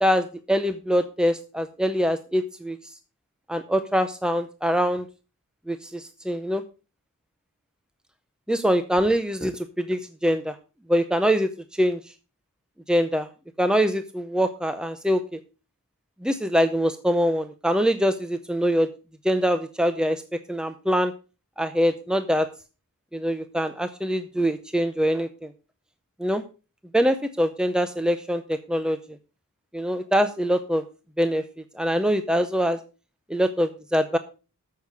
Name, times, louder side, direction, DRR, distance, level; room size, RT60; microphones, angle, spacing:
voice 1, 0.0-2.8 3.5-5.1 5.7-6.6 8.5-10.6 10.9-12.0 12.9-13.3 13.6-15.4 16.2-18.9 19.2-21.1 21.6-22.5 23.1-25.5 26.2-26.4 26.9-29.0 29.7-30.8 31.2-31.4 31.7-32.8 33.3-34.2, equal, 5° right, 9 dB, 0.6 m, -24 dB
13.5 x 6.6 x 4.8 m, 0.33 s
head